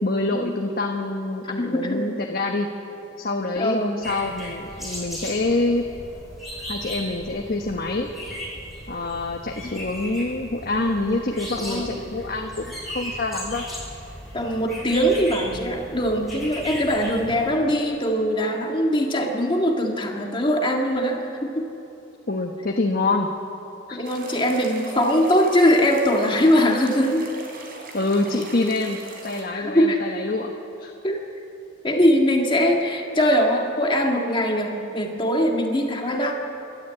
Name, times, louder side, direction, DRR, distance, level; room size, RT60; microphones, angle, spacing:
voice 1, 0.0-2.7 3.2-5.9 6.7-8.1 8.9-13.6 22.3-23.3 23.9-24.0 27.9-29.0 29.2-30.5 30.8-30.9, left 2 dB, 50° left, 2 dB, 1.2 m, -26 dB
voice 2, 1.6-2.1 3.5-4.0 9.6-9.7 11.6-11.9 14.3-21.7 23.9-27.3 29.5-30.0 31.0-31.2 31.8-36.3, equal, 25° left, 1 dB, 1.7 m, -21 dB
sound 1, 4.0-17.5, equal, ahead, 7.3 m, -37 dB
sound 2, 24.0-29.4, right 2 dB, 50° right, 3.7 m, -41 dB
29.0 x 12.5 x 8.8 m, 2.9 s
head